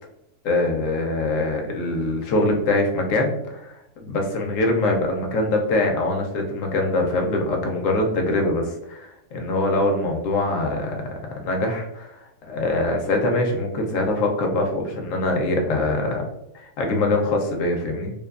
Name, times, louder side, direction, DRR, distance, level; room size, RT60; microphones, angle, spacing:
voice 1, 0.4-11.1 11.4-12.2 12.5-16.3 16.5-18.1, left 2 dB, 70° left, 1 dB, 0.9 m, -23 dB
2.6 x 2.2 x 2.3 m, 0.83 s
omnidirectional pair, 1.5 m